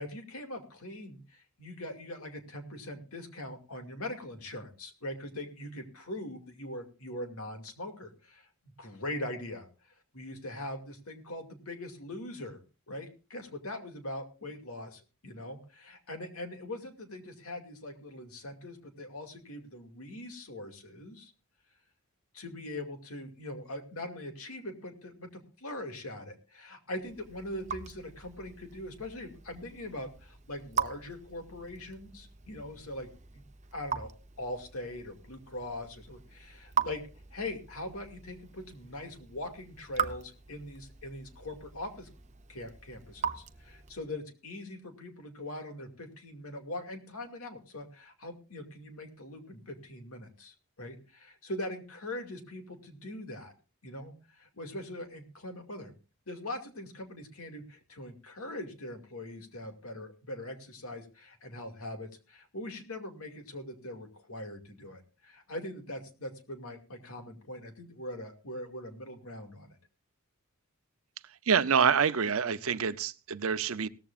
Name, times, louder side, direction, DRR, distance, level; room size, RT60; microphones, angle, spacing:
voice 1, 0.0-8.5 8.8-9.7 10.1-12.6 12.9-21.3 22.3-33.4 33.7-34.1 34.4-37.0 37.3-42.1 42.5-53.5 53.8-55.9 56.3-69.8, left 1 dB, 80° left, 2.5 m, -42 dB
Raindrop / Drip, 27.0-44.1, right 7 dB, 35° right, 0.8 m, -40 dB
voice 2, 71.5-73.9, right 6 dB, 75° right, 0.7 m, -26 dB
17.5 x 14.0 x 2.5 m
head